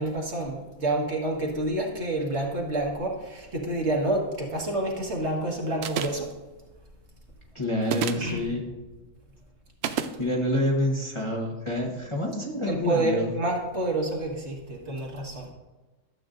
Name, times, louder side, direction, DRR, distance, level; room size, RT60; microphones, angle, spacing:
voice 1, 0.0-6.3 8.2-8.4 12.7-15.5, right 2 dB, 50° right, -1 dB, 1.8 m, -28 dB
sound 1, 5.8-6.3 7.8-8.3 9.8-10.1, right 7 dB, 65° right, 0.6 m, -29 dB
voice 2, 7.5-8.6 10.2-13.3, left 1 dB, 20° left, -2 dB, 1.1 m, -27 dB
12.5 x 7.9 x 2.6 m, 1.2 s
omnidirectional pair, 1.6 m